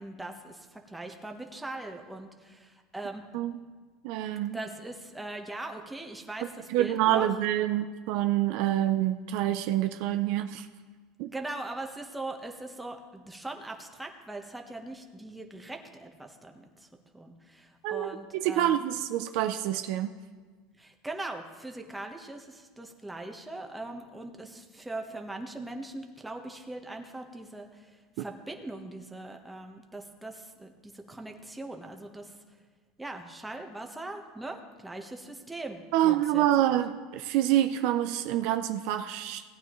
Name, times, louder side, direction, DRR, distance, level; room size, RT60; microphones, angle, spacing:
voice 1, 0.0-3.2 4.5-7.3 11.3-16.9 17.1-18.8 20.8-27.9 28.2-32.3 33.0-36.8, right 2 dB, 5° right, 3 dB, 1.2 m, -40 dB
voice 2, 4.0-4.6 6.7-10.7 11.2-11.3 17.8-20.1 35.9-39.4, right 12 dB, 65° right, 7 dB, 0.5 m, -27 dB
17.5 x 9.2 x 3.1 m, 1.5 s
supercardioid pair, 125°, 0 cm